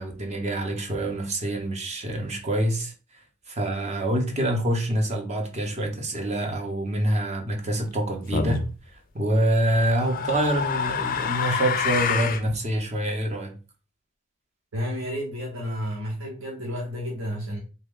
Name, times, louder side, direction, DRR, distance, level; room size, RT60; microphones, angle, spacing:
voice 1, 0.0-2.9 3.5-8.7 9.1-13.6, right 1 dB, 35° right, 0.7 m, -26 dB
sound 1, 8.3-8.7 9.7-12.5, left 6 dB, 45° left, 0.4 m, -27 dB
voice 2, 14.7-17.6, equal, 75° right, 1.0 m, -31 dB
3.2 x 2.2 x 3.6 m
head